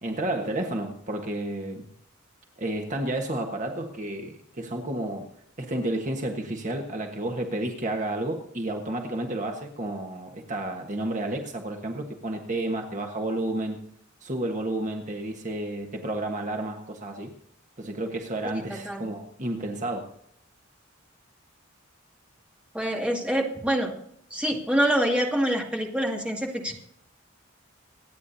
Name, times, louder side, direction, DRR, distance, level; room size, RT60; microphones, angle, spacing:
voice 1, 0.0-1.8 2.6-5.3 5.6-13.8 14.2-17.3 17.8-20.1, right 1 dB, 40° right, 3 dB, 1.5 m, -31 dB
voice 2, 18.7-19.0 22.7-23.9 24.3-26.7, right 1 dB, 5° right, -1 dB, 2.2 m, -26 dB
26.5 x 9.6 x 2.8 m, 0.70 s
head